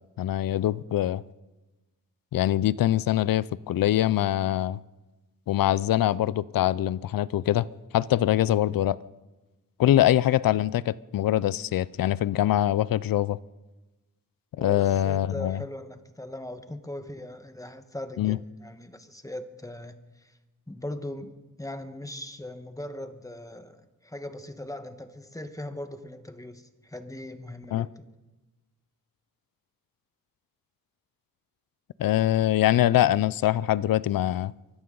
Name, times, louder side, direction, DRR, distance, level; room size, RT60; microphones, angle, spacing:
voice 1, 0.2-1.2 2.3-4.8 5.5-7.7 7.9-9.0 9.8-13.4 14.6-15.6 18.2-18.4 27.7-27.9 32.0-34.5, left 13 dB, 80° left, 20 dB, 0.5 m, -23 dB
voice 2, 14.6-20.3 20.7-21.3 21.6-28.0, left 1 dB, 10° left, 8 dB, 1.2 m, -39 dB
24.0 x 13.5 x 3.9 m, 1.1 s
wide cardioid pair, 95°, 34 cm